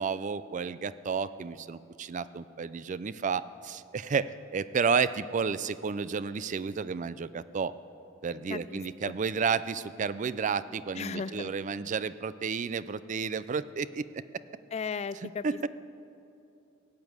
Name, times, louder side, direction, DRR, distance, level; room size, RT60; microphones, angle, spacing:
voice 1, 0.0-7.7 8.2-14.1 15.4-15.7, right 5 dB, 40° right, 16 dB, 0.4 m, -31 dB
voice 2, 8.5-9.1 10.9-11.5 14.7-15.7, left 5 dB, 35° left, 16 dB, 0.3 m, -36 dB
17.0 x 9.1 x 7.9 m, 2.8 s
head